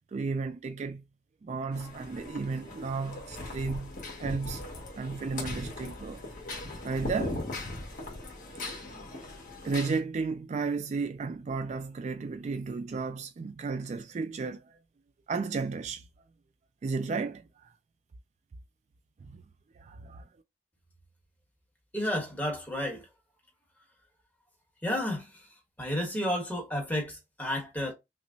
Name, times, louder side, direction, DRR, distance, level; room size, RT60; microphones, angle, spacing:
voice 1, 0.1-1.0 1.4-4.7 5.0-6.2 6.8-7.4 9.6-14.8 15.3-16.1 16.8-17.7 19.2-19.4 19.8-20.3, right 4 dB, 40° right, 0.3 m, -33 dB
sound 1, 1.7-10.0, left 2 dB, 50° left, 1.5 m, -39 dB
voice 2, 21.9-23.1 24.8-25.5 25.8-27.9, left 1 dB, 10° left, 1.2 m, -31 dB
5.8 x 2.1 x 2.7 m
head